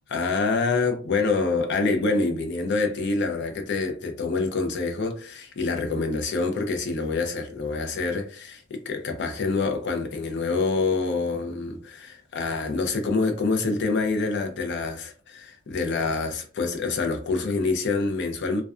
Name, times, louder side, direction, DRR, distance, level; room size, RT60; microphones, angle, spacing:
voice 1, 0.1-18.6, left 3 dB, 55° left, 0.5 m, -26 dB
2.4 x 2.2 x 2.3 m
head